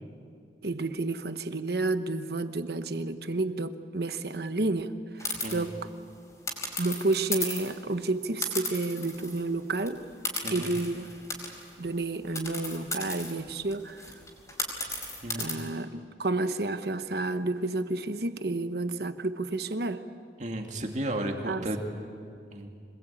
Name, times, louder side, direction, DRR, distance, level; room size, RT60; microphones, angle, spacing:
voice 1, 0.6-5.7 6.8-10.0 10.5-11.1 11.8-14.2 15.3-20.0 21.4-21.7, right 2 dB, 60° right, 10 dB, 1.1 m, -30 dB
sound 1, 5.2-5.5 6.5-7.8 8.4-9.5 9.8-9.9 10.2-11.7 12.4-15.5, left 2 dB, 15° left, 4.6 m, -35 dB
voice 2, 20.4-21.8 22.5-22.7, right 1 dB, 40° right, 2 dB, 2.5 m, -33 dB
26.0 x 20.5 x 8.9 m, 2.3 s
head